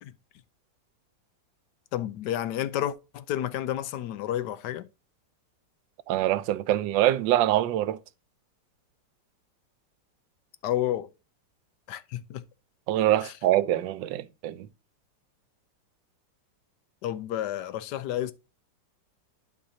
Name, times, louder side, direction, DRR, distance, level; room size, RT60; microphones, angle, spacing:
voice 1, 1.9-4.9 10.6-11.1 11.9-12.4 13.2-13.3 17.0-18.3, left 12 dB, 75° left, 1.1 m, -30 dB
voice 2, 6.1-8.0 12.9-14.7, right 13 dB, 90° right, 1.3 m, -24 dB
11.5 x 4.7 x 2.7 m
omnidirectional pair, 2.0 m